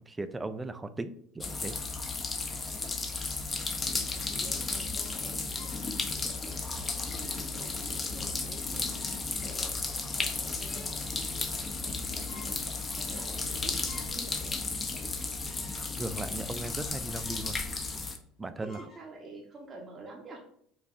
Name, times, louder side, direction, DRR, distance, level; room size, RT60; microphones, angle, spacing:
voice 1, 0.1-1.8 15.7-17.6 18.4-18.9, right 2 dB, 20° right, 11 dB, 0.3 m, -37 dB
sound 1, 1.4-18.2, left 3 dB, 25° left, 0.6 m, -34 dB
voice 2, 2.4-2.8 3.9-14.5 18.6-20.4, right 3 dB, 35° right, -2 dB, 0.8 m, -49 dB
sound 2, 4.1-5.9 6.4-6.5 7.2-7.7 8.1-8.2 8.7-9.4 9.8-9.9 10.3-11.0 11.4-11.9 12.2-12.6 13.1-13.2 13.6-14.3 14.7-14.8 15.5-15.9 16.3-16.4 17.1-17.6 17.9-18.0 18.6-19.6, left 3 dB, 50° left, 1.0 m, -54 dB
4.8 x 2.5 x 2.5 m, 0.66 s
supercardioid pair, 90°, 0 cm